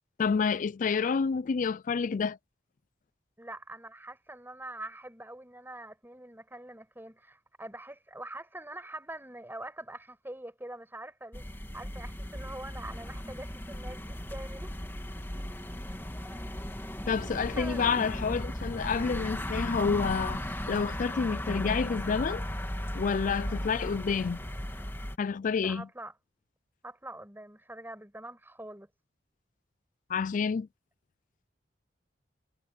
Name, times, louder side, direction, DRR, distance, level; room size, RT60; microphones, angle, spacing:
voice 1, 0.2-2.4 17.1-20.4 20.7-22.4 22.9-24.4 25.2-25.9 30.1-30.7, left 5 dB, 45° left, 0.4 m, -29 dB
voice 2, 3.4-14.8 16.2-16.4 17.6-17.9 23.5-24.0 25.6-26.1 26.8-28.9, right 1 dB, 10° right, 7.4 m, -44 dB
sound 1, 11.3-25.2, equal, 15° left, 2.3 m, -36 dB
head